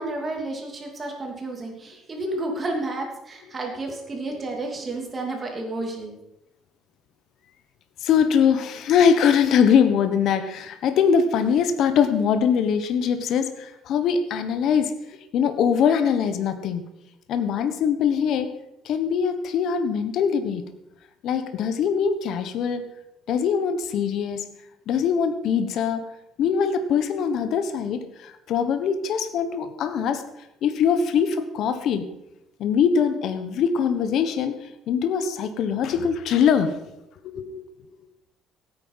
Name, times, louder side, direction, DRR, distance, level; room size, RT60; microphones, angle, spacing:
voice 1, 0.0-6.2, right 2 dB, 25° right, 1 dB, 3.0 m, -31 dB
voice 2, 8.0-14.9 15.3-16.9 17.3-18.5 18.8-20.6 21.2-22.8 23.3-24.5 24.9-26.1 26.4-30.2 30.6-32.1 32.6-36.8 37.2-37.6, left 7 dB, 60° left, 9 dB, 1.2 m, -22 dB
16.0 x 9.2 x 5.7 m, 0.86 s
cardioid pair, 135°, 0 cm